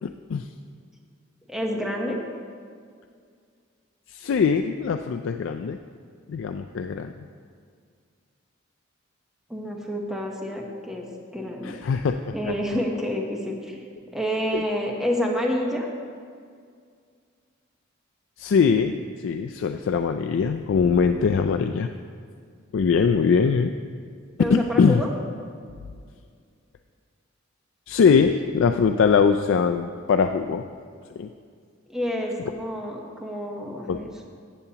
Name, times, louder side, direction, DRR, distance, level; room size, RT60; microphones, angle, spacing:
voice 1, 0.0-0.5 4.1-5.8 6.3-7.1 11.6-12.5 14.5-14.6 18.4-21.9 22.7-23.7 24.5-25.0 27.9-30.6 31.2-31.3 33.9-34.0, left 5 dB, 65° left, 6 dB, 0.3 m, -22 dB
voice 2, 1.5-2.2 9.5-11.8 12.3-13.8 14.1-15.9 24.4-25.1 31.9-34.1, equal, 5° right, 0 dB, 0.9 m, -28 dB
14.0 x 8.0 x 2.9 m, 2.1 s
head